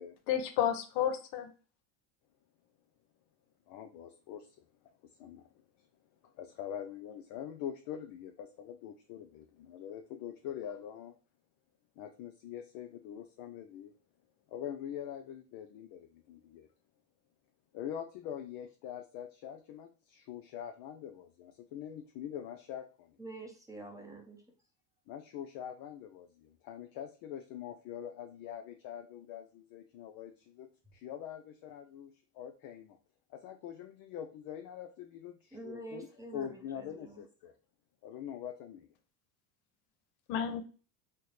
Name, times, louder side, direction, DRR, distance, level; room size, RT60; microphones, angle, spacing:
voice 1, 0.3-1.5 40.3-40.6, left 9 dB, 75° left, 7 dB, 0.8 m, -31 dB
voice 2, 3.7-4.6 5.2-5.5 5.8-5.9 6.2-11.2 12.0-13.9 14.5-16.7 17.7-23.2 25.1-33.0 33.3-36.1 36.3-37.6 38.0-38.9, left 9 dB, 50° left, 5 dB, 0.5 m, -44 dB
voice 3, 23.2-24.4 35.5-37.2, right 2 dB, 5° right, 0 dB, 0.6 m, -47 dB
4.2 x 2.1 x 3.2 m, 0.36 s
supercardioid pair, 125°, 46 cm